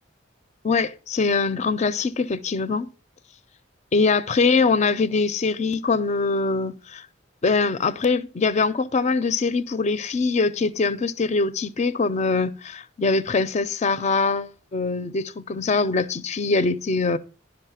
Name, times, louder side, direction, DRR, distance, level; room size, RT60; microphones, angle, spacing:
voice 1, 0.6-2.9 3.9-7.1 7.4-17.2, left 4 dB, 35° left, 0.4 m, -23 dB
11.5 x 5.2 x 5.7 m
head